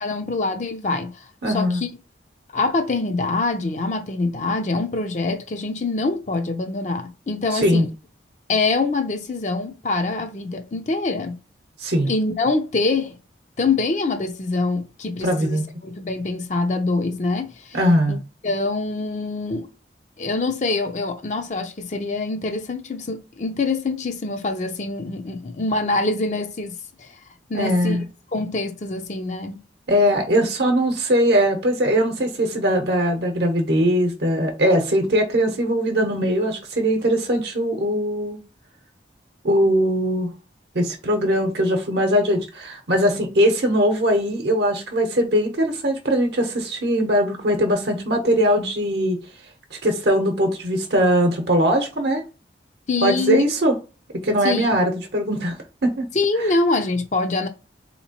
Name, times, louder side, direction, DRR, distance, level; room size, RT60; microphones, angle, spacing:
voice 1, 0.0-1.9 2.5-7.9 8.5-11.4 12.1-13.2 13.6-17.8 18.1-18.2 18.4-19.7 20.2-27.1 27.5-28.0 28.3-29.6 52.9-53.4 54.4-54.8 56.1-57.5, left 3 dB, 40° left, 0.5 m, -25 dB
voice 2, 1.4-1.8 7.5-7.9 11.8-12.1 15.2-15.6 17.7-18.2 27.5-28.0 29.9-38.4 39.4-40.3 40.7-49.2 49.7-52.2 53.0-53.7 54.2-55.6 55.8-56.1 56.4-56.5, equal, 70° right, 0.8 m, -20 dB
3.6 x 2.9 x 2.8 m
head